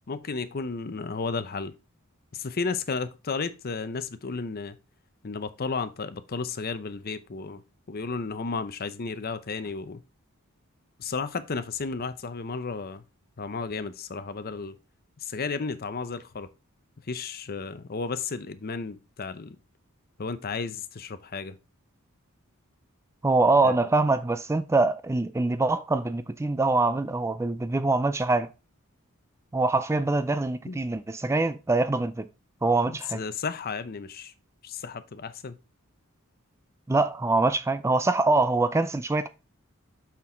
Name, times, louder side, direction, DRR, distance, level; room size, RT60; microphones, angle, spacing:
voice 1, 0.1-1.7 2.3-4.8 5.2-7.6 7.9-10.0 11.0-13.0 13.4-14.8 15.2-16.5 17.0-19.6 20.2-21.6 23.6-23.8 30.7-30.8 32.9-34.3 34.6-35.6, left 4 dB, 45° left, 0.6 m, -33 dB
voice 2, 23.2-28.5 29.5-32.3 32.6-33.2 36.9-39.3, right 3 dB, 15° right, 0.3 m, -24 dB
6.0 x 5.9 x 4.4 m
head